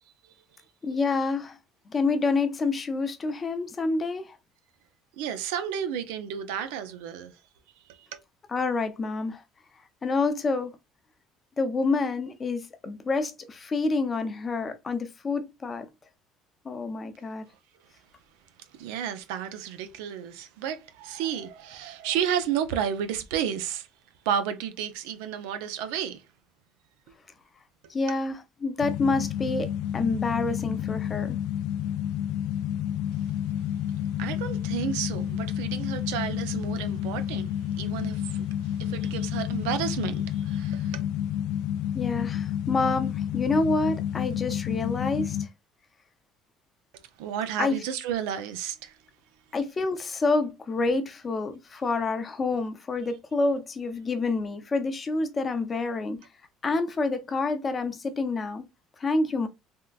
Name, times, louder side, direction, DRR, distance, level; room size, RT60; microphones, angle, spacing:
voice 1, 0.8-1.6 1.9-4.4 8.5-9.4 10.0-10.8 11.6-15.9 16.6-17.5 27.9-31.4 41.9-45.5 47.6-47.8 49.5-56.2 56.6-58.6 59.0-59.5, left 3 dB, 30° left, 0.6 m, -28 dB
voice 2, 5.2-7.3 8.0-8.2 18.8-23.9 24.3-26.2 34.2-41.0 47.2-48.9, right 9 dB, 85° right, 0.4 m, -32 dB
sound 1, 28.8-45.5, left 10 dB, 80° left, 0.3 m, -30 dB
3.6 x 2.1 x 2.3 m
supercardioid pair, 100°, 0 cm